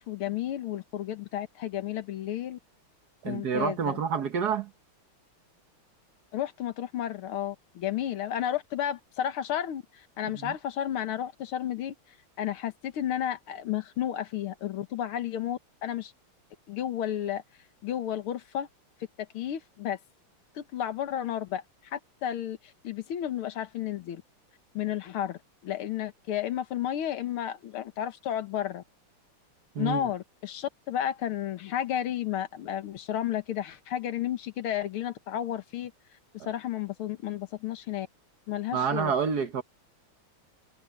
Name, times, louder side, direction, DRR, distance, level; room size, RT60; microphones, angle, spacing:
voice 1, 0.0-2.6 3.3-4.0 6.3-11.9 12.4-16.1 16.7-17.4 17.8-18.7 19.2-20.0 20.6-21.6 21.9-22.6 22.8-24.2 24.7-28.8 29.8-35.9 36.4-38.1 38.5-39.1, left 11 dB, 75° left, 2.0 m, -32 dB
voice 2, 3.2-4.7 10.4-10.5 29.7-30.0 36.4-36.5 38.7-39.6, right 7 dB, 55° right, 1.5 m, -28 dB
omnidirectional pair, 2.4 m